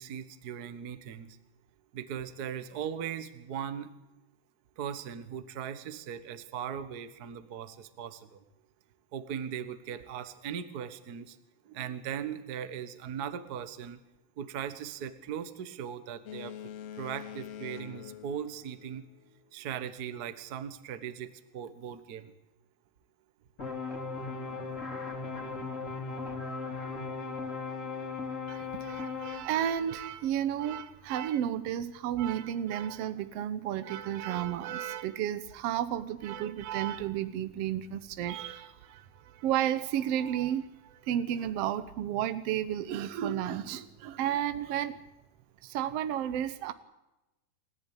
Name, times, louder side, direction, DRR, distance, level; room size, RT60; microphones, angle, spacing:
voice 1, 0.0-1.4 1.9-3.9 4.8-8.4 9.1-11.4 11.6-14.0 14.4-16.7 17.0-19.0 19.5-22.3, right 8 dB, 55° right, 11 dB, 1.0 m, -39 dB
Boat Water vehicle, 16.3-19.4, left 9 dB, 65° left, 1.7 m, -45 dB
sound 1, 23.6-29.4, left 4 dB, 20° left, 3.0 m, -37 dB
voice 2, 28.5-45.0 45.6-46.7, right 10 dB, 80° right, 12 dB, 1.4 m, -32 dB
28.5 x 14.5 x 8.8 m, 0.98 s
omnidirectional pair, 4.0 m